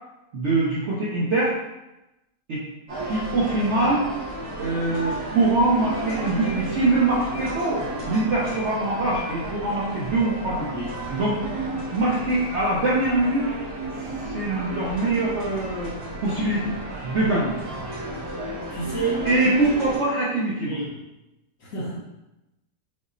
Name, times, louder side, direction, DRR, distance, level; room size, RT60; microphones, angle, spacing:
voice 1, 0.3-1.6 2.5-2.6 3.1-4.0 4.6-10.7 11.1-11.4 11.9-13.5 14.3-15.9 16.2-16.7 17.0-17.5 19.2-20.8, right 2 dB, 65° right, -7 dB, 0.7 m, -23 dB
sound 1, 2.9-20.0, right 2 dB, 85° right, 2.0 m, -33 dB
voice 2, 18.7-19.3 20.7-20.9 21.6-22.0, right 3 dB, 60° left, -5 dB, 1.0 m, -29 dB
5.4 x 2.0 x 2.5 m, 0.96 s
omnidirectional pair, 1.8 m